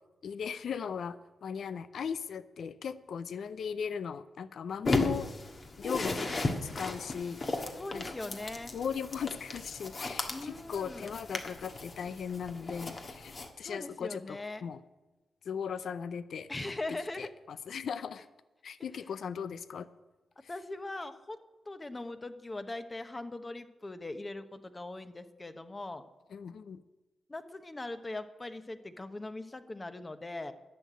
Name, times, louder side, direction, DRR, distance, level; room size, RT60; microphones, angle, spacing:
voice 1, 0.2-5.3 5.8-6.3 6.6-8.1 8.7-14.8 15.4-16.5 17.2-18.3 18.6-19.9 26.3-26.8, left 7 dB, 75° left, 15 dB, 0.5 m, -38 dB
sound 1, 4.8-13.5, left 3 dB, 50° left, 1.5 m, -35 dB
voice 2, 7.8-8.7 10.3-11.1 13.6-14.6 16.5-17.3 18.9-19.0 20.5-21.4 21.7-26.0 27.3-30.5, left 2 dB, 30° left, 10 dB, 1.0 m, -40 dB
11.5 x 6.6 x 9.3 m, 1.1 s
cardioid pair, 55°, 0 cm